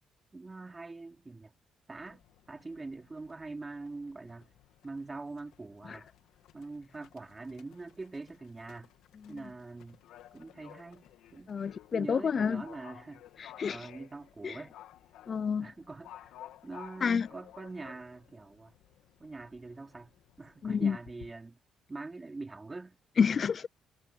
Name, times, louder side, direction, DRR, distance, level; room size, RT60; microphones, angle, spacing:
voice 1, 0.3-1.5 1.9-4.5 4.8-6.1 6.5-8.9 9.3-10.0 10.3-11.6 11.9-13.2 13.7-14.7 15.6-16.3 16.6-18.7 19.2-20.1 20.4-21.6 21.9-23.0 23.3-23.5, right 3 dB, 25° right, 4.4 m, -44 dB
Livestock farm animals working animals, 1.9-21.3, left 12 dB, 85° left, 2.1 m, -56 dB
voice 2, 11.5-12.6 13.4-13.9 14.4-14.6 15.3-15.7 17.0-17.3 20.6-21.0 23.2-23.7, left 6 dB, 45° left, 0.4 m, -29 dB
cardioid pair, 90°, 0 cm